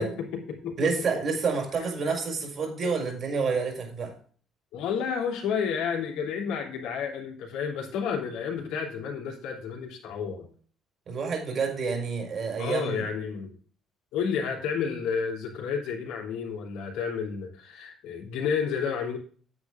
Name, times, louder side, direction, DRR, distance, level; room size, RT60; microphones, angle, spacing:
voice 1, 0.0-1.0 1.7-1.9 4.7-10.5 12.6-13.5 14.1-19.2, left 6 dB, 85° left, 0 dB, 3.1 m, -31 dB
voice 2, 0.8-4.1 11.1-13.0, right 5 dB, 50° right, 3 dB, 4.7 m, -28 dB
9.1 x 8.6 x 3.6 m, 0.44 s
cardioid pair, 105°, 0 cm